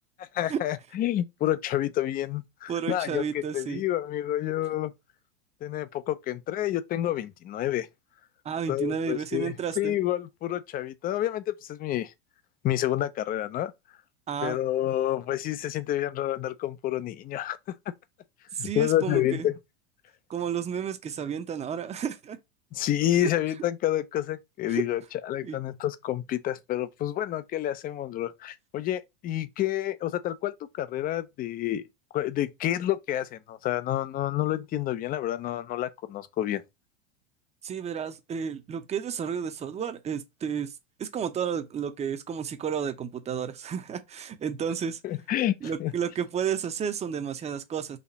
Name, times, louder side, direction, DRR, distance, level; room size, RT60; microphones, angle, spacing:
voice 1, 0.3-4.9 5.6-7.9 8.7-12.1 12.6-13.7 14.4-17.8 18.6-19.5 22.7-31.8 32.1-36.6 45.0-45.9, left 13 dB, 30° left, 0.5 m, -29 dB
voice 2, 2.7-3.8 8.4-9.9 14.3-14.6 18.5-19.5 20.3-22.4 24.7-24.8 25.4-25.6 37.6-40.7 41.0-45.0 45.6-48.0, right 7 dB, 20° right, 0.7 m, -32 dB
4.2 x 2.9 x 4.0 m
supercardioid pair, 120°, 30 cm